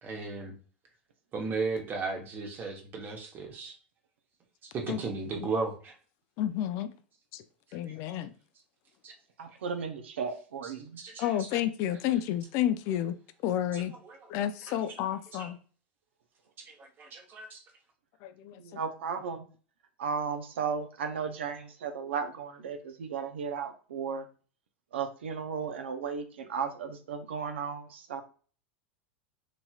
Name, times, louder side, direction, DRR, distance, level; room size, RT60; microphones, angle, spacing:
voice 1, 0.0-0.5 1.3-3.7 4.7-5.9 9.0-9.1 11.0-11.6 13.7-14.2 14.7-15.1 15.3-15.5 16.7-17.6, right 4 dB, 35° right, 0.9 m, -36 dB
voice 2, 6.4-6.9 7.3-7.4 7.7-8.3 11.2-13.2 13.4-13.9 14.3-15.6 18.2-18.6, left 11 dB, 50° left, 0.3 m, -30 dB
voice 3, 9.4-11.0 18.6-19.4 20.0-24.3 24.9-28.2, right 6 dB, 85° right, 0.5 m, -35 dB
3.0 x 2.8 x 2.3 m
hypercardioid pair, 105°, 6 cm